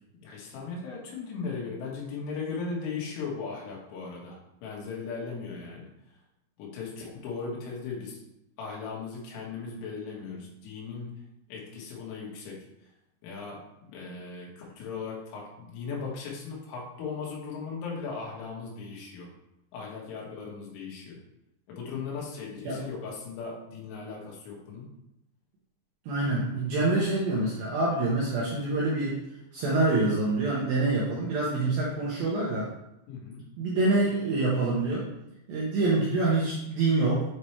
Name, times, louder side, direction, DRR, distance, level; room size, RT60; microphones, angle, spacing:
voice 1, 0.2-5.9 6.6-8.2 8.6-11.1 11.5-12.6 13.2-19.3 19.7-21.2 21.7-24.9 33.1-33.5, left 5 dB, 85° left, -3 dB, 4.0 m, -37 dB
voice 2, 26.1-29.2 29.5-32.7 33.6-35.1 35.5-37.3, right 2 dB, 75° right, -5 dB, 2.2 m, -26 dB
8.5 x 3.3 x 4.3 m, 0.87 s
omnidirectional pair, 5.5 m